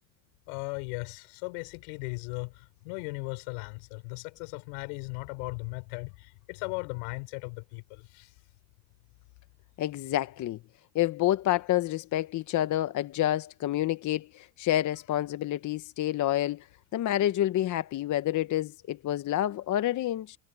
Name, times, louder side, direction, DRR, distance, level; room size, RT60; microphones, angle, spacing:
voice 1, 0.5-8.3, left 33 dB, 80° left, 5.6 m, -37 dB
voice 2, 9.8-10.6 10.9-16.7 16.9-20.4, left 13 dB, 45° left, 0.9 m, -28 dB
supercardioid pair, 115°, 43 cm